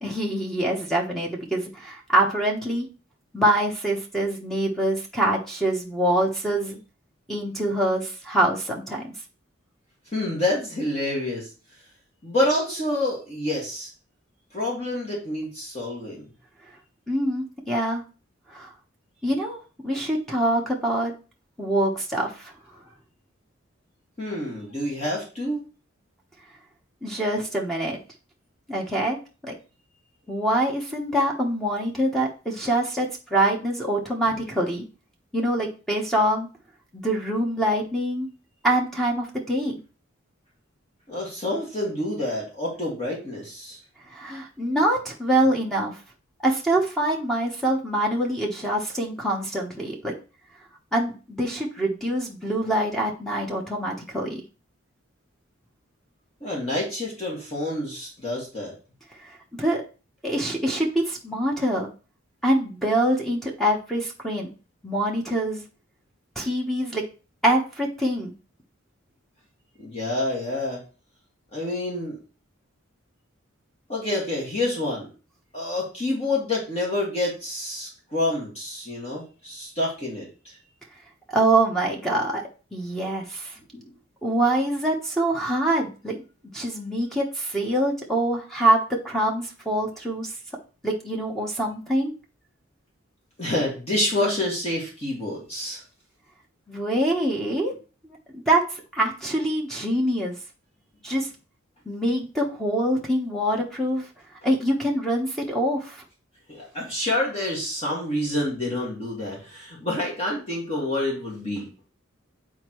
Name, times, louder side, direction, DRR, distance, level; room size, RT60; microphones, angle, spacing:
voice 1, 0.0-2.9 3.3-6.8 7.3-9.1 17.1-18.0 18.5-18.7 19.2-19.6 19.8-21.1 21.6-22.5 27.0-28.0 28.7-29.2 29.4-29.5 30.3-34.8 35.3-36.5 36.9-38.3 38.6-39.8 44.1-46.0 46.4-50.1 50.9-54.4 59.2-59.8 60.2-61.9 62.4-64.5 64.8-65.6 66.3-67.0 67.4-68.3 81.3-82.4 82.7-83.6 84.2-86.2 86.5-90.3 90.8-92.1 96.7-97.7 98.3-100.4 101.0-101.3 101.8-104.1 104.4-106.0, right 1 dB, ahead, -1 dB, 1.1 m, -25 dB
voice 2, 10.1-11.5 12.2-13.9 14.5-16.3 24.2-25.6 41.1-43.8 56.4-58.7 69.8-70.8 71.5-72.2 73.9-75.1 75.5-80.6 83.7-83.9 93.4-95.8 106.5-111.7, left 1 dB, 30° left, -4 dB, 2.0 m, -28 dB
8.8 x 4.5 x 3.1 m, 0.34 s
head